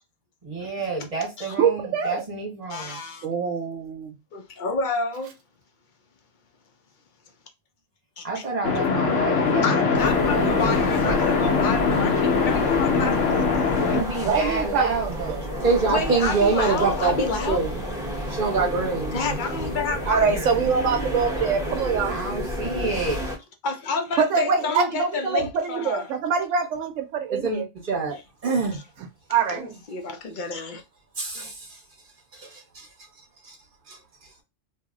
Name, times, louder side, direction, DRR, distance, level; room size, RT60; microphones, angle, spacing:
voice 1, 0.4-3.0 8.2-12.1 13.9-15.4 19.3-19.7 22.1-23.2, right 3 dB, 30° right, 1.2 m, -31 dB
voice 2, 1.6-2.2 3.2-4.2 14.2-15.0 20.1-22.2 24.2-27.7 29.3-29.8, right 6 dB, 85° right, 0.9 m, -24 dB
voice 3, 2.7-3.3 4.3-5.3 8.2-8.4 9.6-13.2 15.9-17.6 19.1-20.5 23.6-25.4 25.7-26.1 28.7-28.8 29.5-30.8, left 4 dB, 60° left, 0.5 m, -29 dB
sound 1, 8.6-14.0, left 5 dB, 80° left, 1.0 m, -22 dB
sound 2, 9.9-23.4, equal, 5° right, 0.7 m, -31 dB
voice 4, 15.6-17.8 18.3-19.3 27.3-28.8 31.2-31.5 33.9-34.0, right 4 dB, 45° right, 0.9 m, -24 dB
2.6 x 2.0 x 3.6 m
omnidirectional pair, 1.3 m